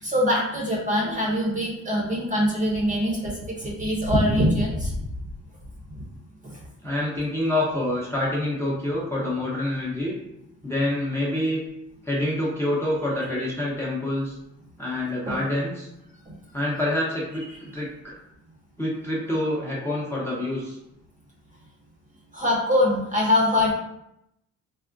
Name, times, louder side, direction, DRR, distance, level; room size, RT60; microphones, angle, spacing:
voice 1, 0.0-5.1 6.4-6.6 15.3-15.4 22.3-23.7, left 1 dB, 25° right, -3 dB, 0.8 m, -23 dB
voice 2, 6.8-10.1 10.6-11.6 12.0-14.4 14.8-15.9 16.5-18.2 18.8-20.8, left 1 dB, 10° left, -6 dB, 0.8 m, -27 dB
3.5 x 2.1 x 2.5 m, 0.81 s
cardioid pair, 90°, 30 cm